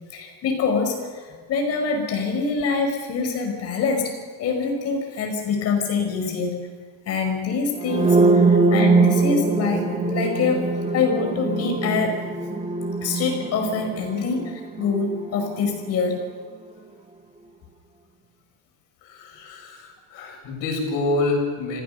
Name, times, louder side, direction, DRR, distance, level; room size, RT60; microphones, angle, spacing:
voice 1, 0.1-1.2 1.5-6.6 7.1-12.2 13.0-16.3, left 4 dB, 45° left, 3 dB, 5.5 m, -25 dB
sound 1, 7.8-15.6, right 3 dB, 20° right, 1.5 m, -22 dB
voice 2, 19.0-21.8, left 2 dB, 60° left, 1 dB, 7.2 m, -27 dB
25.5 x 16.0 x 6.8 m, 1.5 s
cardioid pair, 165°, 36 cm